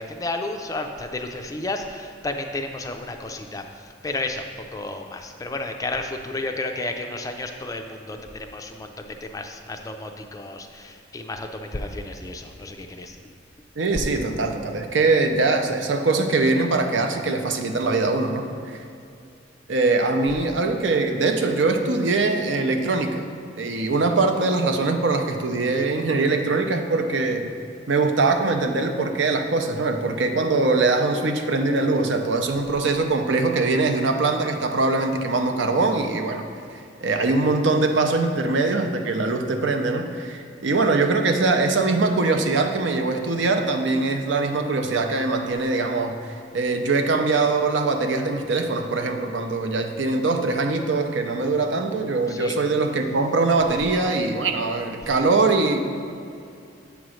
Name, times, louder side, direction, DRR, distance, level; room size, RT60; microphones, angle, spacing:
voice 1, 0.0-3.6 4.0-13.2 52.3-52.6, left 2 dB, 20° left, 5 dB, 0.4 m, -32 dB
voice 2, 13.8-18.8 19.7-23.2 23.6-27.5 27.9-36.5 36.7-55.8, right 3 dB, 75° right, 5 dB, 0.6 m, -22 dB
8.3 x 3.0 x 6.2 m, 2.5 s
head